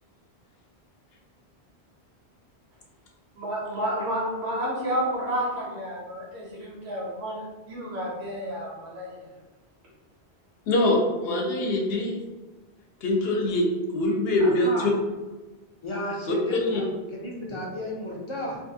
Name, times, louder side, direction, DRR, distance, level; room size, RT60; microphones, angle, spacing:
voice 1, 3.4-9.2, equal, 85° right, -6 dB, 1.1 m, -30 dB
voice 2, 10.7-12.2 13.0-13.7 13.9-14.9 16.3-16.8, left 1 dB, 70° left, 0 dB, 0.8 m, -23 dB
voice 3, 14.4-14.9 15.8-18.6, left 1 dB, 45° left, -4 dB, 0.4 m, -33 dB
2.6 x 2.4 x 2.6 m, 1.2 s
omnidirectional pair, 1.1 m